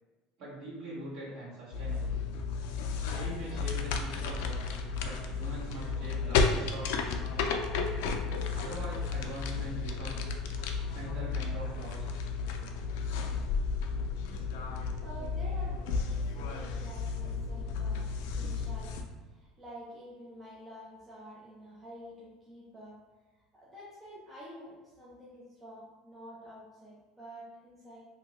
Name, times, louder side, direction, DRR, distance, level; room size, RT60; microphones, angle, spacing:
voice 1, 0.4-2.2 3.1-7.2 8.5-10.3 10.9-12.2, right 1 dB, 55° right, -8 dB, 1.5 m, -43 dB
sound 1, 1.7-19.0, left 4 dB, 85° left, 0.3 m, -33 dB
voice 2, 15.0-23.0 23.5-28.0, equal, 15° right, -7 dB, 0.5 m, -49 dB
2.7 x 2.7 x 3.0 m, 1.2 s
cardioid pair, 165°, 0 cm